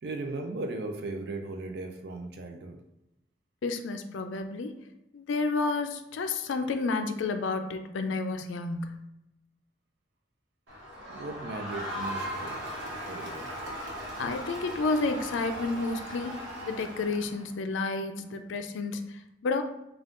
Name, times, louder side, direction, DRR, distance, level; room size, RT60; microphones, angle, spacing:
voice 1, 0.0-2.8 11.1-12.7 13.1-13.5, right 2 dB, 60° right, 4 dB, 0.4 m, -37 dB
voice 2, 3.6-4.7 5.1-9.0 14.2-16.3 16.6-19.6, left 3 dB, 90° left, 7 dB, 0.4 m, -31 dB
Crowd, 10.7-17.5, equal, 85° right, 1.0 m, -38 dB
3.5 x 2.3 x 3.7 m, 0.88 s
head